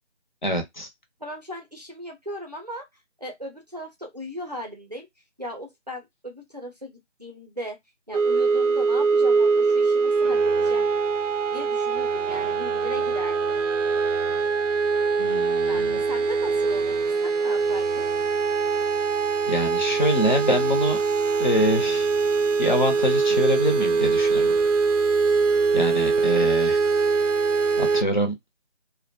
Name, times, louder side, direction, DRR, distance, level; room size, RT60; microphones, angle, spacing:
voice 1, 0.4-0.9 15.2-16.0 19.5-21.0 21.4-22.1 22.6-24.5 25.7-26.8 27.8-28.3, equal, 40° left, 0.6 m, -25 dB
voice 2, 1.2-2.9 3.2-5.1 5.4-7.8 8.1-10.9 11.5-13.6 15.7-18.1, equal, 35° right, 0.5 m, -37 dB
sound 1, 8.1-28.0, right 4 dB, 85° right, 0.5 m, -23 dB
2.3 x 2.1 x 2.7 m
figure-of-eight pair, 165°, 36 cm